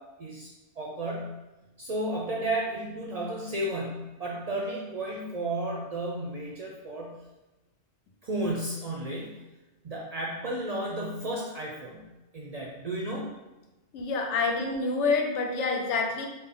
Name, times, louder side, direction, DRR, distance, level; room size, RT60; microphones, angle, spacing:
voice 1, 0.0-1.4 1.8-7.2 8.2-9.5 9.8-13.3, right 1 dB, 55° right, -3 dB, 0.4 m, -33 dB
voice 2, 13.9-16.3, left 4 dB, 85° left, 2 dB, 0.9 m, -27 dB
3.9 x 2.1 x 3.5 m, 1.0 s
omnidirectional pair, 1.2 m